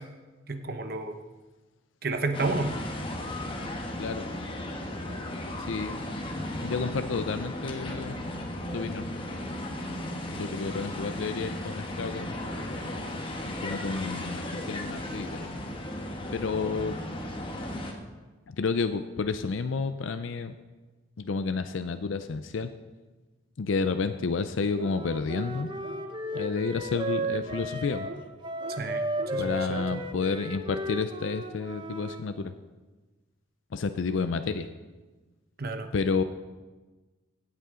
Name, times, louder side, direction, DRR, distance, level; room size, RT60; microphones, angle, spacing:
voice 1, 0.5-1.2 2.0-2.8 28.8-29.8 35.6-35.9, right 3 dB, 50° right, 7 dB, 0.9 m, -31 dB
sound 1, 2.3-17.9, left 1 dB, 25° left, 1.2 m, -35 dB
voice 2, 5.7-6.0 6.6-8.2 8.7-9.1 10.4-12.3 13.5-15.3 16.3-17.0 18.5-20.5 21.2-22.7 23.6-25.7 26.3-28.1 29.4-32.5 33.7-34.7 35.9-36.2, left 4 dB, 75° left, 10 dB, 0.5 m, -30 dB
Wind instrument woodwind instrument, 24.8-32.2, right 1 dB, 25° right, 0.7 m, -34 dB
sound 2, 24.8-25.0 25.3-25.5 25.8-26.0 26.3-26.5 26.9-27.1 27.5-27.6 28.0-28.2 28.6-28.8 29.2-29.3 29.7-29.9, right 1 dB, 70° right, 1.5 m, -41 dB
16.5 x 8.3 x 3.8 m, 1.2 s
head